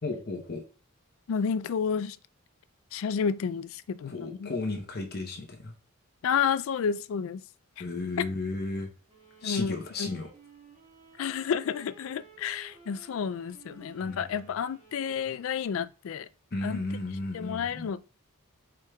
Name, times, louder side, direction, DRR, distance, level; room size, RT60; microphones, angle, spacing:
voice 1, 0.0-0.6 4.1-5.7 7.8-8.9 9.4-10.3 14.0-14.2 16.5-17.9, left 3 dB, 45° left, 0.8 m, -34 dB
voice 2, 1.3-2.2 2.9-4.5 6.2-7.4 7.8-7.9 9.4-10.1 11.2-16.3 16.6-16.8 17.3-18.1, left 7 dB, 65° left, 0.3 m, -31 dB
sound 1, 9.1-15.6, right 4 dB, 30° right, 1.7 m, -55 dB
4.9 x 4.6 x 2.3 m
head